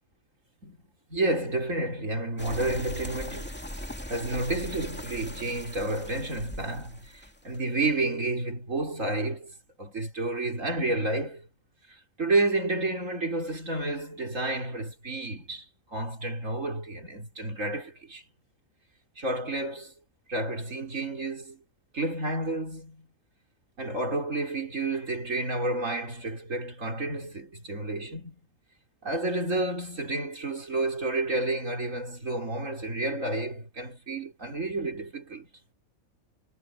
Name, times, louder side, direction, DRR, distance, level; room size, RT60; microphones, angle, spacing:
voice 1, 1.1-3.6 4.1-9.5 9.8-11.5 11.9-15.6 15.9-18.2 19.2-19.9 20.3-21.6 21.9-23.1 23.8-28.4 29.0-35.5, right 2 dB, 65° right, 4.8 m, -30 dB
sound 1, 2.4-7.8, left 1 dB, 5° left, 2.3 m, -40 dB
omnidirectional pair, 1.5 m